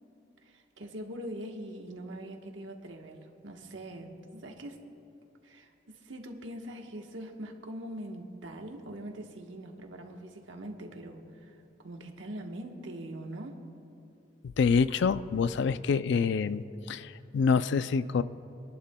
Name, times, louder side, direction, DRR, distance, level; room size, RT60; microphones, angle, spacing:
voice 1, 0.4-4.8 5.4-13.6, right 1 dB, 85° right, 3 dB, 1.2 m, -42 dB
voice 2, 14.4-18.2, left 5 dB, 70° left, 15 dB, 0.4 m, -27 dB
27.5 x 11.5 x 2.2 m, 2.6 s
head